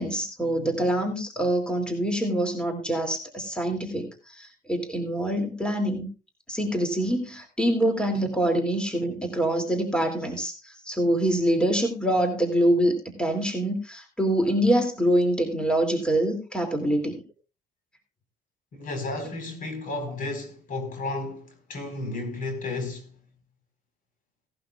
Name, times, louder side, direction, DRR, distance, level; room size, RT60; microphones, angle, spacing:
voice 1, 0.0-6.1 6.5-17.1, right 1 dB, 5° left, 2.8 m, -25 dB
voice 2, 18.7-23.1, left 2 dB, 55° left, 4.7 m, -33 dB
17.5 x 11.5 x 2.5 m
cardioid pair, 110°, 17 cm